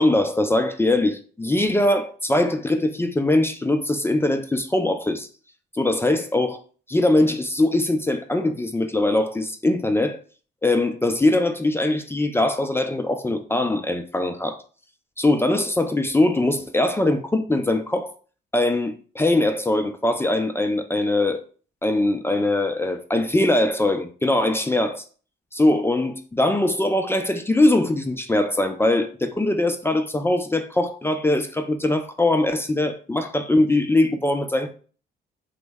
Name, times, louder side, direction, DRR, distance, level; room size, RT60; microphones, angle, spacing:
voice 1, 0.0-5.3 5.7-6.6 6.9-10.2 10.6-14.6 15.2-18.1 18.5-21.4 21.8-25.0 25.5-34.7, left 2 dB, 10° left, 0.3 m, -21 dB
3.0 x 2.1 x 3.4 m
cardioid pair, 90°, 20 cm